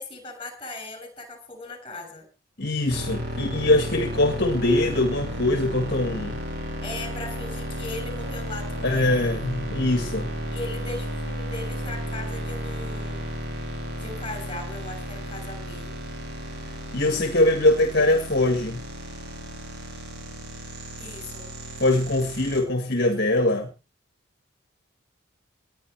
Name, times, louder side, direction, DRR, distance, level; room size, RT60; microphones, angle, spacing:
voice 1, 0.0-2.3 6.8-9.3 10.5-13.2 13.9-15.9 21.0-21.5, left 2 dB, 25° left, 6.7 m, -38 dB
voice 2, 2.6-6.4 8.8-10.3 16.9-18.8 21.8-23.7, left 1 dB, 50° left, 1.9 m, -22 dB
sound 1, 2.9-22.6, equal, 55° right, 5.1 m, -33 dB
19.5 x 10.5 x 4.7 m
head